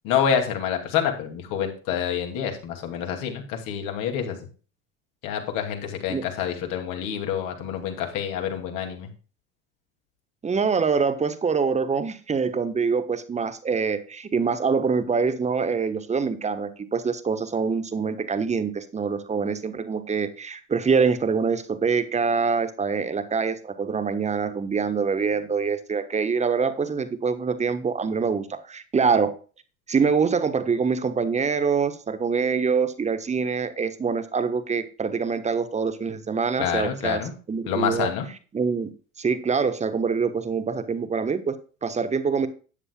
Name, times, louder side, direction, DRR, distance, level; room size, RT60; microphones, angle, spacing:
voice 1, 0.0-4.4 5.2-9.1 36.6-37.3 37.7-38.3, left 8 dB, 50° left, 4 dB, 2.6 m, -27 dB
voice 2, 10.4-29.3 29.9-37.2 37.5-38.1 38.5-38.9 39.2-42.5, right 5 dB, 15° right, 11 dB, 1.2 m, -25 dB
13.5 x 9.7 x 2.3 m, 0.36 s
figure-of-eight pair, 70°, 41 cm